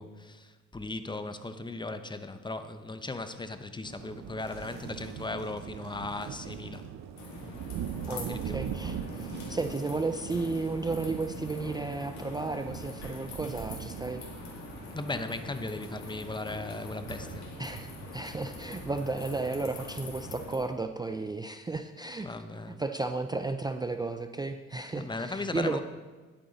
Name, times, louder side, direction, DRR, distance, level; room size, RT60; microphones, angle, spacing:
voice 1, 0.0-6.9 8.1-8.6 14.9-17.5 22.2-22.8 24.9-25.8, left 2 dB, 15° left, 9 dB, 0.7 m, -37 dB
sound 1, 3.8-20.4, right 9 dB, 65° right, 0.7 m, -42 dB
sound 2, 4.3-7.9 8.4-13.1 13.4-16.1 16.4-16.8 17.2-17.3, right 2 dB, 40° right, 3.6 m, -60 dB
sound 3, 7.2-20.6, left 2 dB, 65° left, 2.5 m, -43 dB
voice 2, 8.1-14.2 17.6-22.3 22.8-25.8, right 3 dB, 15° right, 7 dB, 0.4 m, -33 dB
10.0 x 8.8 x 4.0 m, 1.3 s
cardioid pair, 90°, 30 cm